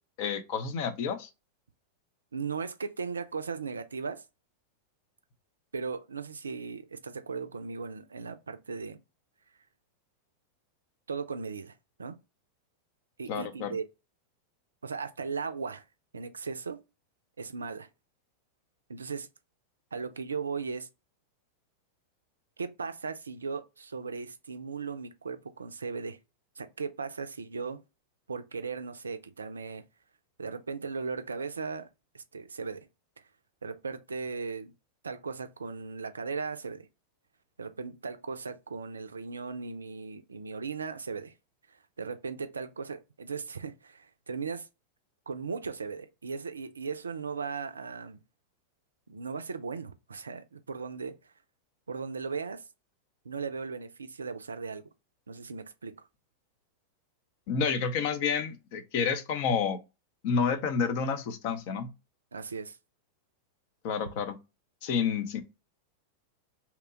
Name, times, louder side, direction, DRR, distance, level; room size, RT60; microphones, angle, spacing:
voice 1, 0.2-1.3 13.3-13.7 57.5-59.8 60.2-61.9 63.8-64.4 64.8-65.4, left 6 dB, 45° left, 0.6 m, -29 dB
voice 2, 2.3-4.2 5.7-9.0 11.1-12.2 13.2-13.9 14.8-15.8 16.1-16.8 17.4-17.9 18.9-19.3 19.9-20.9 22.6-26.2 26.6-27.8 28.3-29.8 30.4-31.9 32.1-32.9 33.6-34.7 35.0-36.9 37.6-41.3 42.0-44.7 45.3-48.2 49.1-51.3 51.9-52.7 53.3-54.8 55.3-55.9 62.3-62.8, right 5 dB, 75° right, 0.4 m, -37 dB
2.9 x 2.2 x 3.7 m
figure-of-eight pair, 90°, 0 cm